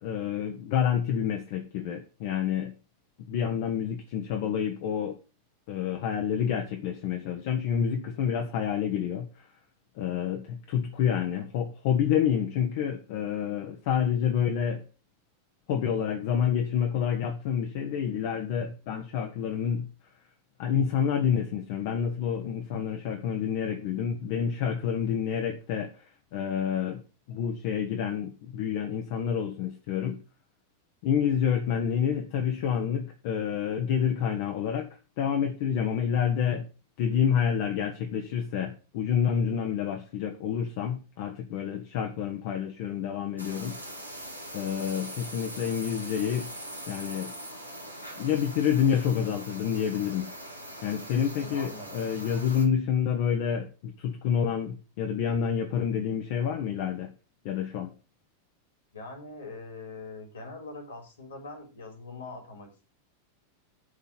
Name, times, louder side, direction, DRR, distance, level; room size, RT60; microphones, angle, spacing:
voice 1, 0.0-2.7 3.3-5.2 5.7-9.5 10.0-14.8 15.7-19.9 20.6-27.0 27.3-30.2 31.0-34.9 35.2-36.6 37.0-43.8 44.5-46.5 46.9-47.3 48.2-50.3 50.8-57.1 57.4-57.9, left 8 dB, 50° left, 1.2 m, -28 dB
sound 1, 43.4-52.7, right 1 dB, 85° right, 1.9 m, -42 dB
voice 2, 51.3-52.0 58.9-62.9, left 3 dB, 70° left, 4.1 m, -43 dB
11.5 x 4.2 x 7.6 m
figure-of-eight pair, 90°, 0 cm